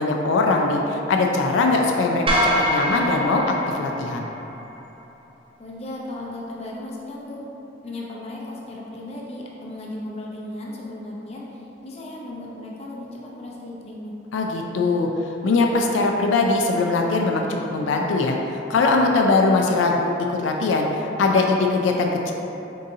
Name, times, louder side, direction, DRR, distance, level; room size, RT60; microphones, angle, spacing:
voice 1, 0.0-4.3 14.3-15.1 15.4-22.3, left 3 dB, 90° left, 1 dB, 0.3 m, -21 dB
sound 1, 2.3-4.6, equal, 30° right, 0.5 m, -24 dB
voice 2, 5.6-7.5 7.8-14.1, left 1 dB, 35° left, -3 dB, 0.5 m, -36 dB
3.9 x 3.7 x 2.7 m, 3.0 s
head